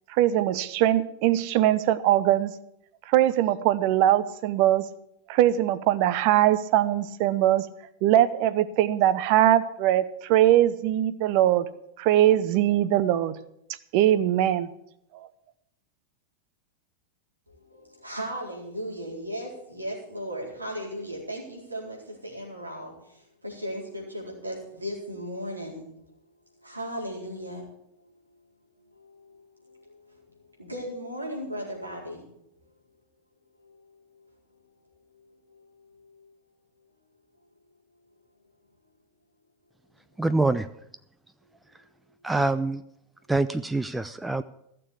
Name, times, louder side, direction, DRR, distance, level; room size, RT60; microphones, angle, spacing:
voice 1, 0.1-2.5 3.1-4.8 5.3-7.7 8.0-11.7 12.0-13.4 13.9-14.7 15.1-15.3, right 12 dB, 45° right, 16 dB, 0.8 m, -21 dB
voice 2, 17.5-25.9 26.6-27.7 28.0-28.4 28.8-30.2 30.6-32.2 33.6-33.8 34.1-34.2 35.1-35.2 35.5-36.3, equal, 85° right, -3 dB, 4.4 m, -37 dB
voice 3, 40.2-40.7 42.2-42.8 43.3-44.4, right 2 dB, 5° right, 13 dB, 0.5 m, -25 dB
15.5 x 7.0 x 8.4 m, 0.78 s
figure-of-eight pair, 90°, 0 cm